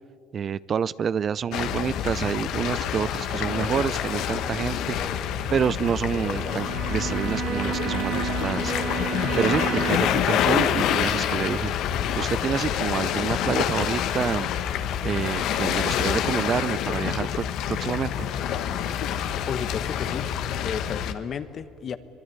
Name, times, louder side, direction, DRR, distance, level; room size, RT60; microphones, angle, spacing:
voice 1, 0.3-5.0 5.5-8.7 9.4-11.7 12.2-14.5 15.0-18.2, right 7 dB, 45° right, 18 dB, 0.6 m, -28 dB
sound 1, 1.5-21.1, left 9 dB, 70° left, 1.3 m, -27 dB
sound 2, 3.2-10.1, right 1 dB, 10° right, 2.7 m, -41 dB
Bowed string instrument, 6.2-10.3, right 12 dB, 75° right, 1.4 m, -32 dB
voice 2, 19.5-20.3 20.6-22.0, left 7 dB, 50° left, 12 dB, 1.3 m, -33 dB
24.0 x 23.0 x 9.6 m, 2.7 s
supercardioid pair, 75°, 0 cm